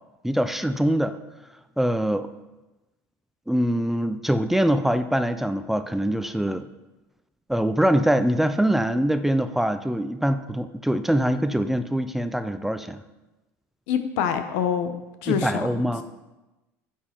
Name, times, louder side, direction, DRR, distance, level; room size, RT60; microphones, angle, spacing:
voice 1, 0.2-1.2 1.8-2.3 3.5-6.6 7.5-13.0 15.3-16.0, equal, 5° right, 10 dB, 0.5 m, -23 dB
voice 2, 13.9-14.9 15.2-15.6, left 8 dB, 80° left, 9 dB, 1.0 m, -25 dB
9.7 x 7.6 x 4.4 m, 1.1 s
supercardioid pair, 100°, 7 cm